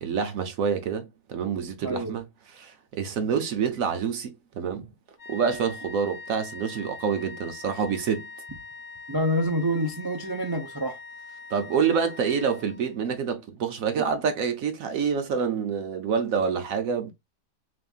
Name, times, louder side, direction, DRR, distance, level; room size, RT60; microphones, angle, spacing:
voice 1, 0.0-4.8 5.3-8.3 11.5-17.1, right 6 dB, 70° right, 1.1 m, -27 dB
voice 2, 1.8-2.1 9.1-11.0 14.0-14.1, equal, 30° right, 0.4 m, -27 dB
sound 1, 5.2-13.1, left 4 dB, 40° left, 0.6 m, -43 dB
6.3 x 2.6 x 2.3 m
omnidirectional pair, 1.6 m